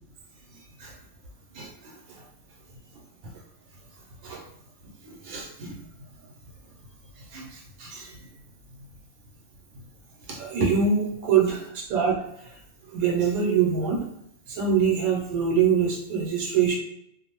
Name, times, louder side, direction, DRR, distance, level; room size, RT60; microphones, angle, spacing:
voice 1, 0.5-1.0 1.5-2.2 3.2-3.3 4.2-4.4 5.0-5.8 7.2-8.2 9.7-9.8 10.3-12.6 12.9-14.0 14.5-16.8, right 6 dB, 85° right, -2 dB, 1.1 m, -25 dB
2.6 x 2.0 x 2.8 m, 0.76 s
omnidirectional pair, 1.5 m